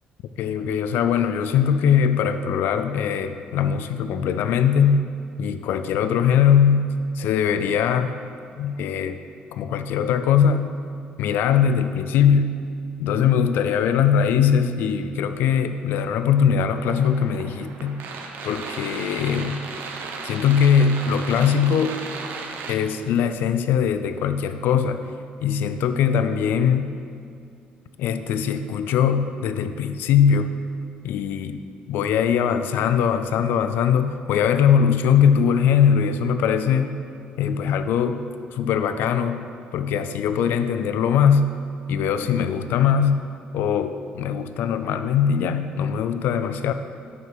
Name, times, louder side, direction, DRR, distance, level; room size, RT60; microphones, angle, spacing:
voice 1, 0.4-5.1 5.4-8.2 8.6-9.2 9.5-10.7 11.2-12.6 13.0-18.0 18.4-19.7 20.2-22.0 22.7-25.0 25.4-26.9 28.0-30.5 31.0-31.6 31.9-37.0 37.4-38.2 38.5-39.5 39.7-41.5 41.9-43.2 43.5-46.7, left 7 dB, 80° left, 10 dB, 0.5 m, -21 dB
sound 1, 16.7-22.7, right 4 dB, 75° right, 0.9 m, -35 dB
7.5 x 6.0 x 5.6 m, 2.4 s
cardioid pair, 130°, 3 cm